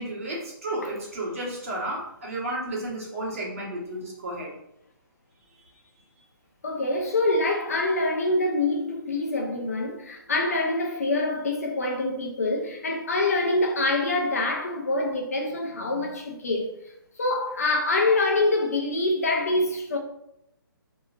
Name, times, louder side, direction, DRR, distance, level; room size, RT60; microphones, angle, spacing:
voice 1, 0.0-4.5, right 1 dB, 35° right, 1.3 m, -32 dB
voice 2, 6.6-16.7 17.2-20.0, left 2 dB, 40° left, 0.6 m, -25 dB
4.7 x 2.9 x 2.4 m
hypercardioid pair, 175°, 12 cm